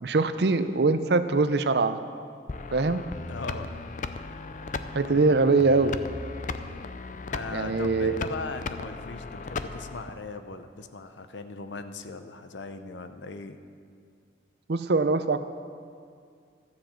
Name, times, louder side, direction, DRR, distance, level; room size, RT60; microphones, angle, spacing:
voice 1, 0.0-2.0 2.7-3.0 4.9-6.0 7.5-8.2 14.7-15.4, right 3 dB, 60° right, 11 dB, 0.5 m, -23 dB
sound 1, 2.5-10.1, left 3 dB, 40° left, 0.4 m, -37 dB
voice 2, 3.3-3.7 7.3-13.6, left 3 dB, 80° left, 9 dB, 0.7 m, -38 dB
13.0 x 7.4 x 7.6 m, 2.3 s
head